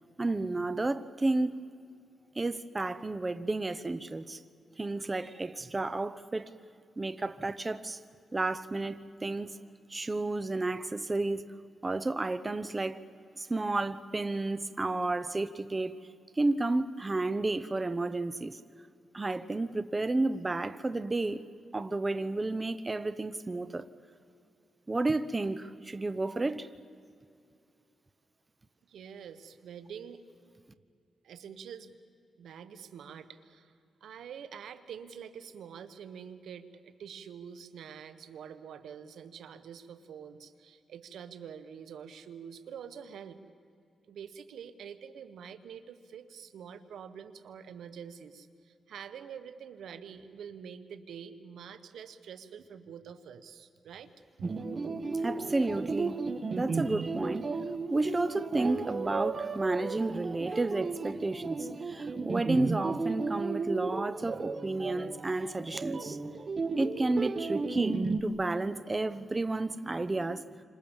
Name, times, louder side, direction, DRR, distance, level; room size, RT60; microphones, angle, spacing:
voice 1, 0.2-1.6 2.3-4.4 4.8-6.5 7.0-8.0 8.3-9.5 9.9-11.5 11.8-13.0 13.4-15.9 16.4-18.6 19.1-21.4 21.7-23.9 24.9-26.7 55.1-56.2 56.6-57.5 57.9-66.2 66.8-70.4, right 2 dB, 25° right, 1.0 m, -31 dB
voice 2, 28.9-30.2 31.2-32.0 32.4-33.7 34.0-43.4 44.1-54.1, right 7 dB, 85° right, 1.5 m, -46 dB
sound 1, 54.4-68.2, right 4 dB, 45° right, 1.6 m, -34 dB
29.0 x 26.5 x 7.3 m
cardioid pair, 75°, 0 cm